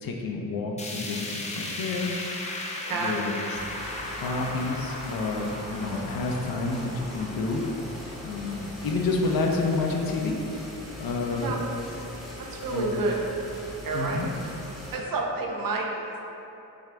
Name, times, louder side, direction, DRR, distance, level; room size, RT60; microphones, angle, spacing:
voice 1, 0.0-2.1 2.8-3.6 4.0-7.6 8.2-10.4 11.0-11.5 12.7-12.9 13.9-14.3, left 3 dB, 85° left, 1 dB, 0.6 m, -29 dB
sound 1, 0.8-10.9 11.3-11.4 11.8-11.9 12.8-12.9, left 1 dB, 20° left, 0.4 m, -38 dB
sound 2, 3.5-15.0, left 1 dB, ahead, 0.8 m, -41 dB
voice 2, 11.2-11.6 12.4-13.2 13.8-14.3 14.9-16.2, right 3 dB, 70° right, 0 dB, 0.7 m, -29 dB
6.3 x 2.5 x 3.3 m, 2.9 s
wide cardioid pair, 160°, 35 cm